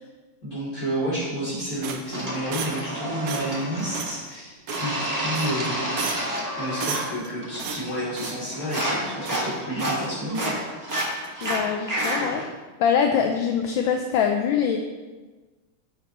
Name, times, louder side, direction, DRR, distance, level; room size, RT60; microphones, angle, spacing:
voice 1, 0.4-5.9 6.6-10.5, equal, 40° left, -11 dB, 3.2 m, -30 dB
sound 1, 1.8-2.9 3.3-3.6 3.9-4.2 4.7-5.1 5.3-5.7 6.0-6.4 6.8-7.3 7.6-8.4 8.7-9.0 9.2-10.1 10.3-10.6 10.9-11.6 12.0-12.2, right 5 dB, 65° right, 0.9 m, -34 dB
sound 2, 2.1-4.2 4.7-7.1 7.4-7.9 8.2-12.5, right 1 dB, 10° right, 1.5 m, -30 dB
voice 2, 11.4-12.4 12.8-14.8, left 7 dB, 75° left, 3 dB, 1.3 m, -23 dB
13.5 x 6.5 x 3.0 m, 1.3 s
omnidirectional pair, 2.4 m